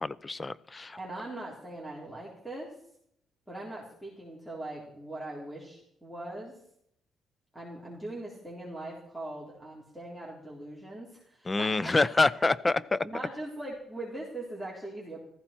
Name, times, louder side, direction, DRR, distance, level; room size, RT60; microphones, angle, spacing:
voice 1, 0.0-1.0 11.5-13.0, left 3 dB, 25° left, 19 dB, 0.6 m, -26 dB
voice 2, 1.0-2.7 3.5-6.6 7.5-12.0 12.4-12.5 13.0-15.2, right 1 dB, ahead, -4 dB, 3.8 m, -41 dB
15.5 x 14.5 x 4.4 m, 0.71 s
cardioid pair, 90°, 0 cm